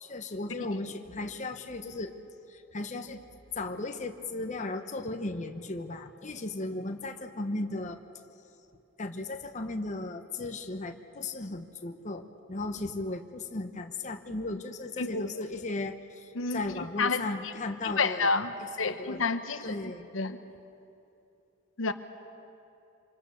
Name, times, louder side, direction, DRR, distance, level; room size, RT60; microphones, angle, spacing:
voice 1, 0.0-2.1 2.5-3.2 3.6-8.0 9.0-12.2 12.5-18.4 18.8-19.2 19.6-20.1, left 2 dB, 35° left, 5 dB, 1.0 m, -36 dB
voice 2, 15.0-15.4 16.3-16.6 17.0-17.5 17.8-20.4 21.8-21.9, left 4 dB, 70° left, 9 dB, 1.0 m, -30 dB
25.5 x 25.0 x 7.0 m, 2.8 s
head